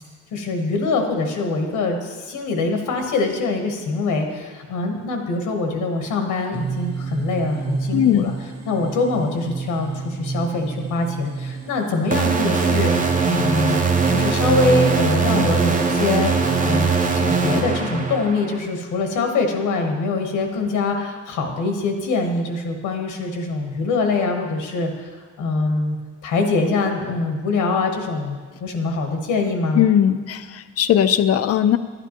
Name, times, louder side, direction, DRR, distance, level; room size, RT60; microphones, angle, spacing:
voice 1, 0.3-8.3 8.7-12.9 13.2-13.8 14.1-16.3 16.6-16.9 17.1-26.0 26.2-29.8, left 3 dB, 90° left, 3 dB, 1.2 m, -23 dB
sound 1, 6.5-18.3, right 5 dB, 55° right, 1.2 m, -30 dB
voice 2, 7.9-8.3 29.8-31.8, left 10 dB, 55° left, 12 dB, 0.5 m, -18 dB
sound 2, 12.1-18.6, right 4 dB, 25° right, 0.8 m, -21 dB
11.0 x 8.2 x 3.0 m, 1.4 s
cardioid pair, 90°, 30 cm